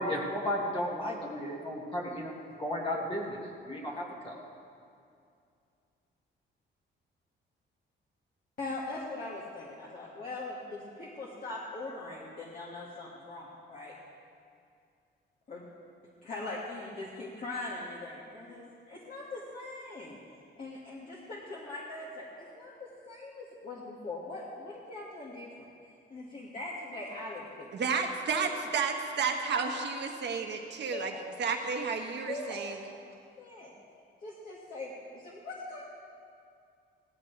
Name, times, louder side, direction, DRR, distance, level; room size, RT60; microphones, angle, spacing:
voice 1, 0.0-2.3 2.6-4.4, left 1 dB, 25° left, -3 dB, 1.9 m, -34 dB
voice 2, 8.6-13.9 15.5-15.6 16.2-20.2 20.6-27.7 30.9-31.2 32.3-32.9 33.4-33.8 34.2-35.8, left 2 dB, 45° left, -6 dB, 2.0 m, -41 dB
voice 3, 27.7-31.1 31.4-32.8, right 5 dB, 65° right, 3 dB, 1.4 m, -31 dB
17.5 x 14.5 x 3.4 m, 2.4 s
cardioid pair, 125°, 20 cm